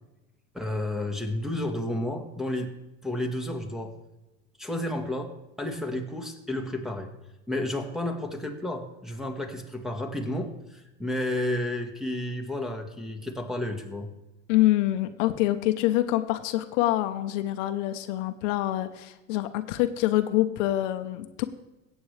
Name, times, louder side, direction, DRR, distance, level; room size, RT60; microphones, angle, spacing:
voice 1, 0.5-2.7 3.0-3.9 4.6-7.1 7.5-14.1, left 1 dB, ahead, 1 dB, 1.5 m, -31 dB
voice 2, 14.5-21.4, left 15 dB, 75° left, 9 dB, 0.9 m, -26 dB
16.5 x 8.2 x 3.3 m, 1.0 s
supercardioid pair, 100°, 37 cm